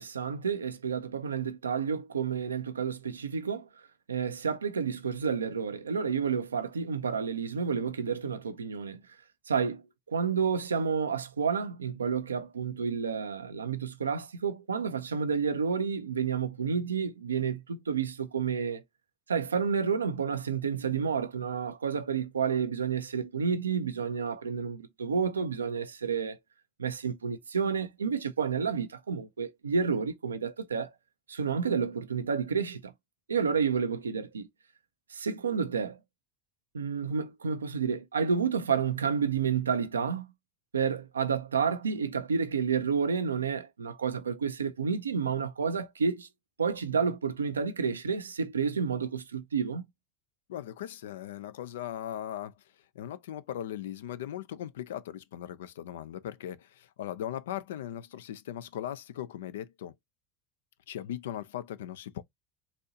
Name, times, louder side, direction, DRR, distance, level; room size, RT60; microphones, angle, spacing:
voice 1, 0.0-3.7 4.1-9.0 9.5-9.8 10.1-18.8 19.3-26.4 26.8-30.9 31.3-32.9 33.3-34.5 35.1-36.0 36.7-40.3 40.7-46.3 46.6-49.8, right 6 dB, 90° right, 0.4 m, -30 dB
voice 2, 50.5-52.5 52.9-59.9 60.9-62.2, left 11 dB, 75° left, 0.4 m, -38 dB
4.1 x 2.7 x 2.7 m
hypercardioid pair, 75°, 0 cm